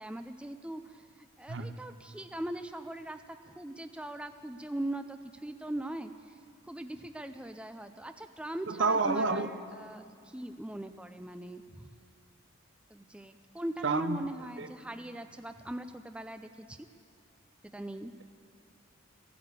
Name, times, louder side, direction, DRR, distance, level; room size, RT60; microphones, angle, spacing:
voice 1, 0.0-3.2 3.5-6.3 6.6-11.9 12.9-16.8 17.6-18.1, right 1 dB, 5° right, 0.4 m, -40 dB
voice 2, 8.7-9.5 13.8-14.2 14.6-14.7, right 3 dB, 65° right, 0.7 m, -29 dB
16.0 x 11.0 x 8.2 m
head